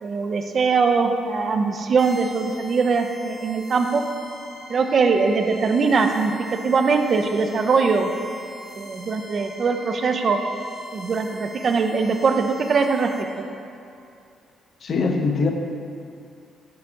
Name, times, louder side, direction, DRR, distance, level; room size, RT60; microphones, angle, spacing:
voice 1, 0.0-4.0 4.7-6.3 6.6-8.1 8.8-10.4 10.9-13.4, right 4 dB, 50° right, 6 dB, 0.4 m, -21 dB
sound 1, 2.0-13.2, right 1 dB, 5° right, 0.9 m, -42 dB
voice 2, 14.8-15.5, left 4 dB, 50° left, 4 dB, 0.6 m, -22 dB
5.7 x 4.6 x 3.8 m, 2.5 s
cardioid pair, 90°, 0 cm